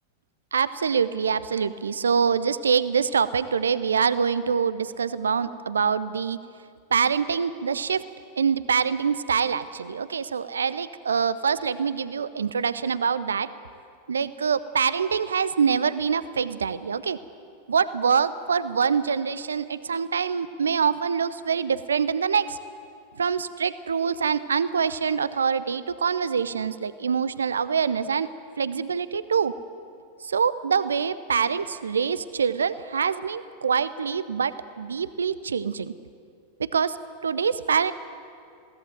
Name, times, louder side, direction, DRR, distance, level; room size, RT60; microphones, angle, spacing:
voice 1, 0.5-6.4 6.9-8.0 8.4-13.5 14.1-17.2 17.7-22.6 23.2-28.3 28.6-29.5 30.2-35.9 36.6-37.0 37.2-37.9, right 6 dB, 70° right, 15 dB, 0.7 m, -25 dB
21.5 x 17.5 x 9.3 m, 2.4 s
figure-of-eight pair, 90°, 0 cm